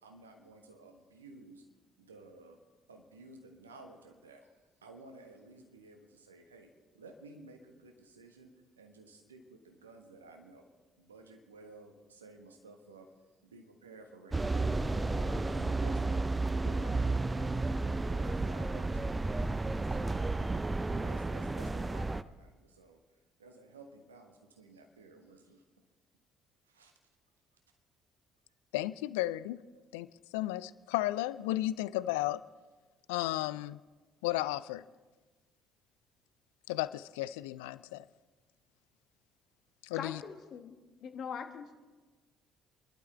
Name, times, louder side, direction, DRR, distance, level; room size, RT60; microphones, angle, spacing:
voice 1, 0.0-1.6 2.0-2.6 2.9-4.5 4.8-8.5 8.8-10.7 11.0-13.1 13.4-18.9 19.9-20.2 21.0-25.6 26.6-27.0 29.7-29.9, right 3 dB, 85° right, 4 dB, 1.4 m, -54 dB
sound 1, 14.3-22.2, right 2 dB, 20° right, 0.5 m, -32 dB
voice 2, 28.7-29.6 29.9-30.1 30.3-32.4 33.1-33.8 34.2-34.8 36.7-38.0 39.8-40.2, left 16 dB, 75° left, 16 dB, 0.3 m, -33 dB
voice 3, 39.9-40.7 41.0-41.7, left 7 dB, 55° left, 6 dB, 1.4 m, -41 dB
29.0 x 12.0 x 3.4 m, 1.3 s
figure-of-eight pair, 50°, 0 cm